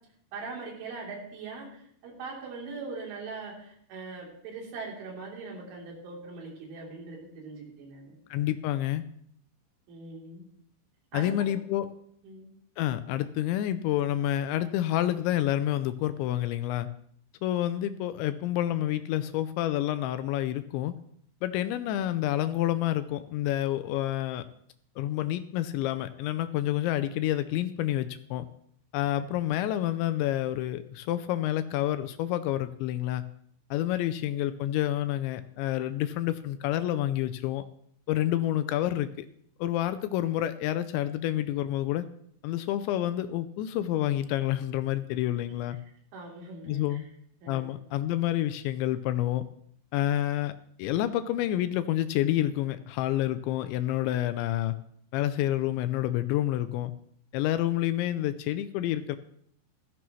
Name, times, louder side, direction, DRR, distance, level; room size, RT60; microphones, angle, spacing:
voice 1, 0.3-8.2 9.9-10.4 11.1-11.6 12.2-12.5 33.9-34.0 45.5-45.6 46.1-47.0 47.4-47.8, right 4 dB, 75° right, -3 dB, 5.8 m, -41 dB
voice 2, 8.3-9.1 11.1-11.9 12.8-16.9 17.4-20.9 21.4-24.4 25.0-28.5 28.9-33.2 33.7-37.6 38.1-39.3 39.6-42.1 42.4-45.8 46.6-47.1 47.5-49.4 49.9-50.5 50.8-54.8 55.1-56.9 57.3-59.2, left 13 dB, 85° left, 11 dB, 2.7 m, -28 dB
15.5 x 14.0 x 3.1 m, 0.65 s
omnidirectional pair, 5.6 m